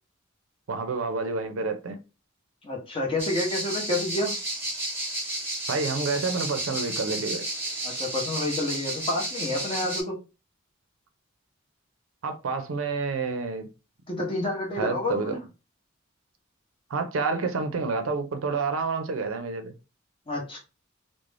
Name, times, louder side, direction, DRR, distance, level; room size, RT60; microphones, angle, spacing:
voice 1, 0.7-2.0 5.7-7.4 12.2-13.7 14.8-15.4 16.9-19.7, right 4 dB, 75° right, 0.5 m, -29 dB
voice 2, 2.6-4.3 7.8-10.2 14.1-15.4 20.3-20.6, left 2 dB, 25° left, 0.7 m, -29 dB
sound 1, 3.2-10.0, right 1 dB, 10° right, 0.8 m, -32 dB
2.5 x 2.1 x 3.1 m
head